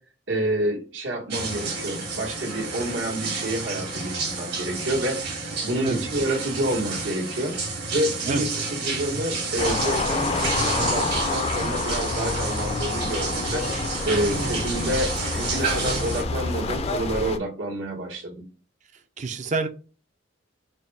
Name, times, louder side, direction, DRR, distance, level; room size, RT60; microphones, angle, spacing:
voice 1, 0.3-7.5 7.9-13.6 14.0-18.4, right 1 dB, 80° right, -1 dB, 1.3 m, -28 dB
sound 1, 1.3-16.2, right 3 dB, 60° right, 1.4 m, -30 dB
sound 2, 9.6-17.4, left 3 dB, 35° left, 0.3 m, -28 dB
voice 2, 18.9-19.7, right 3 dB, 40° right, 7 dB, 0.4 m, -28 dB
4.0 x 2.2 x 3.2 m, 0.35 s
head